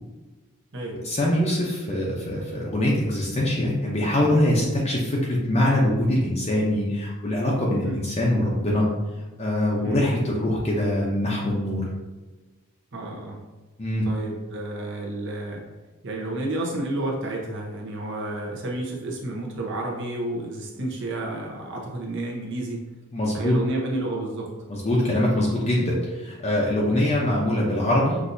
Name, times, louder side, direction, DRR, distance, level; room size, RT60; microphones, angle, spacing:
voice 1, 1.0-8.9 9.4-11.9 13.8-14.0 23.1-23.5 24.7-28.2, left 1 dB, 30° left, -4 dB, 0.6 m, -23 dB
voice 2, 12.9-13.4 14.0-15.6 16.0-22.9 23.3-24.5 26.9-27.1, right 1 dB, 60° right, -1 dB, 0.9 m, -31 dB
6.2 x 2.6 x 2.7 m, 1.2 s
head